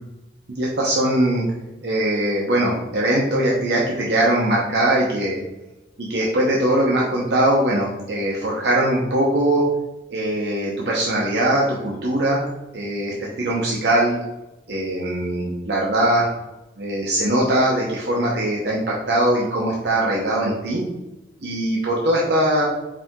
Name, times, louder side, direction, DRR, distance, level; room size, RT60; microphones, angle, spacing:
voice 1, 0.5-1.4 1.8-5.4 6.0-9.6 10.1-12.5 12.7-14.2 14.7-16.3 16.8-20.8 21.4-22.7, right 1 dB, 70° right, -4 dB, 0.8 m, -21 dB
4.9 x 2.8 x 3.6 m, 1.0 s
head